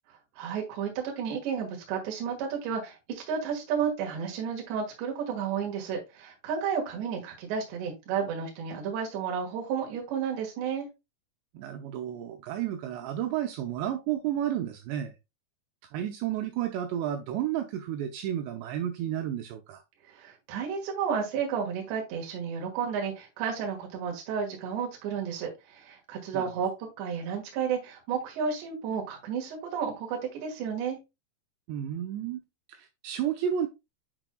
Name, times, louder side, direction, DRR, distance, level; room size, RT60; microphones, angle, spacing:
voice 1, 0.4-10.9 20.1-26.7 27.0-31.0, right 7 dB, 70° right, 3.6 m, -32 dB
voice 2, 11.5-15.1 15.9-19.8 26.3-26.7 31.7-32.4 32.7-33.7, right 10 dB, 85° right, 2.6 m, -32 dB
9.0 x 5.3 x 2.2 m
omnidirectional pair, 5.6 m